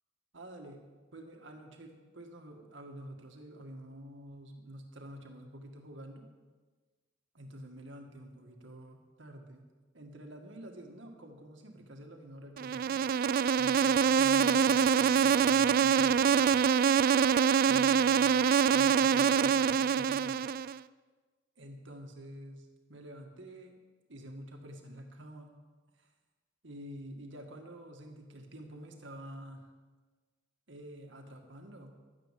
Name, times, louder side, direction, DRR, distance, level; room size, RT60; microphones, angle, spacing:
voice 1, 0.3-6.3 7.3-9.7 9.9-13.0 13.5-16.6 17.6-20.4 21.6-23.8 24.1-25.5 26.0-26.1 26.6-29.7 30.7-31.9, right 1 dB, 75° right, 3 dB, 1.9 m, -48 dB
Insect, 12.6-20.8, right 7 dB, 50° right, 0.3 m, -25 dB
12.5 x 9.6 x 7.6 m, 1.3 s
head